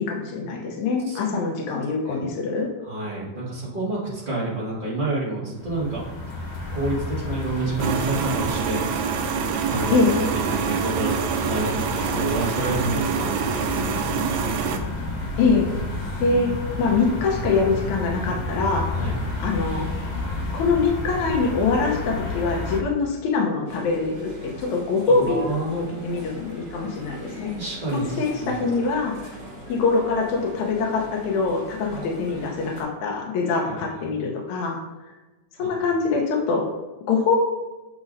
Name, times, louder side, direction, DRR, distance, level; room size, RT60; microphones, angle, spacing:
voice 1, 0.0-2.7 9.9-10.1 15.4-15.7 16.2-16.5 16.8-18.9 19.4-19.9 20.5-24.3 24.6-27.5 28.2-29.4 29.7-34.8 35.6-36.7 37.1-37.4, left 4 dB, 80° left, -1 dB, 2.2 m, -24 dB
voice 2, 1.1-1.4 2.1-2.2 2.8-6.0 6.7-8.9 9.6-14.3 18.9-19.2 25.3-26.1 27.5-28.5 33.9-34.1 35.6-35.7, right 2 dB, 25° right, -7 dB, 1.1 m, -29 dB
sound 1, 5.6-22.8, left 2 dB, 60° left, 2.1 m, -31 dB
sound 2, 7.8-14.8, right 7 dB, 80° right, 1.9 m, -26 dB
sound 3, 23.7-32.8, equal, 55° right, 3.0 m, -40 dB
8.1 x 6.1 x 2.6 m, 1.2 s
omnidirectional pair, 3.4 m